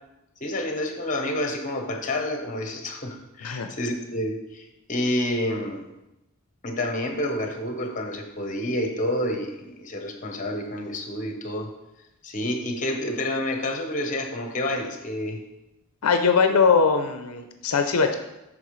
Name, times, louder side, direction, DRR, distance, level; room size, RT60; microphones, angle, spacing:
voice 1, 0.4-5.8 6.6-11.7 12.2-15.4, left 1 dB, 35° left, 4 dB, 1.0 m, -29 dB
voice 2, 16.0-18.1, left 5 dB, 80° left, 6 dB, 0.5 m, -21 dB
8.5 x 6.0 x 3.2 m, 0.94 s
head